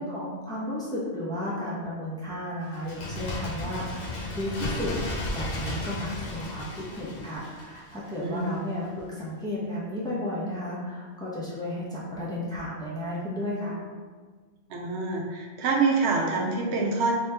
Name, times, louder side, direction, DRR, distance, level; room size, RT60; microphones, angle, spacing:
voice 1, 0.0-4.1 4.3-4.9 5.3-13.8, left 1 dB, 5° left, -7 dB, 0.7 m, -33 dB
Bird, 2.7-8.3 8.6-8.7, left 1 dB, 60° left, 0.9 m, -34 dB
voice 2, 8.2-8.6 14.7-17.1, right 3 dB, 80° right, -1 dB, 0.9 m, -26 dB
3.1 x 3.0 x 3.3 m, 1.5 s
omnidirectional pair, 1.2 m